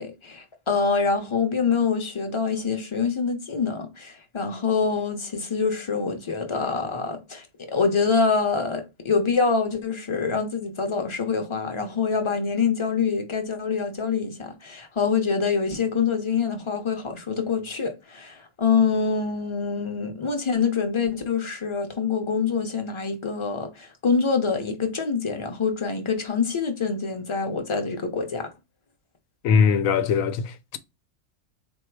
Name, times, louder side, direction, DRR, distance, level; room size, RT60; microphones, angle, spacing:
voice 1, 0.0-28.5, left 5 dB, 30° left, 0.6 m, -25 dB
voice 2, 29.4-30.8, left 6 dB, 85° left, 1.0 m, -21 dB
4.0 x 2.3 x 4.5 m
omnidirectional pair, 1.4 m